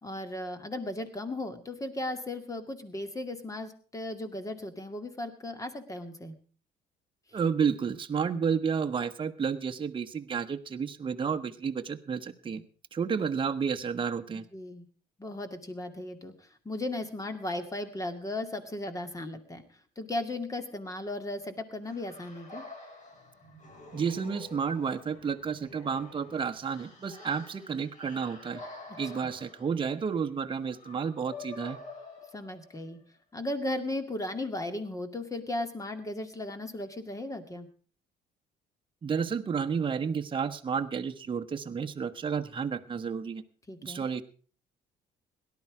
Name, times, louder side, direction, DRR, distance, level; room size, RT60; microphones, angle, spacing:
voice 1, 0.0-6.3 14.3-14.9 15.2-19.6 20.0-22.6 29.2-29.3 32.3-33.0 33.3-37.7 43.7-44.1, left 1 dB, 20° left, 9 dB, 2.2 m, -36 dB
voice 2, 7.3-12.6 12.9-14.5 23.9-28.6 29.0-31.8 39.0-43.4 43.8-44.2, right 6 dB, 30° right, 6 dB, 1.1 m, -31 dB
sound 1, 21.8-32.9, left 3 dB, 45° left, 4.7 m, -48 dB
17.5 x 11.5 x 4.8 m, 0.41 s
cardioid pair, 110°, 17 cm